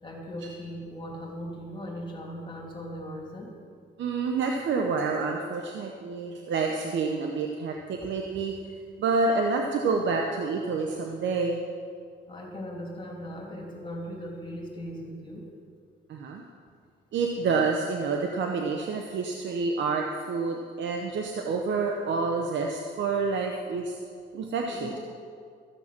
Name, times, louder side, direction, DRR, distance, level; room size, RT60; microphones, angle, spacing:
voice 1, 0.0-3.5 8.0-8.1 12.3-15.5 24.7-25.0, equal, 25° left, -1 dB, 2.9 m, -38 dB
voice 2, 4.0-8.5 9.0-11.6 16.1-16.4 17.1-24.0 24.3-24.9, right 4 dB, 70° right, 2 dB, 1.0 m, -28 dB
14.0 x 7.2 x 6.0 m, 2.2 s
cardioid pair, 90°, 20 cm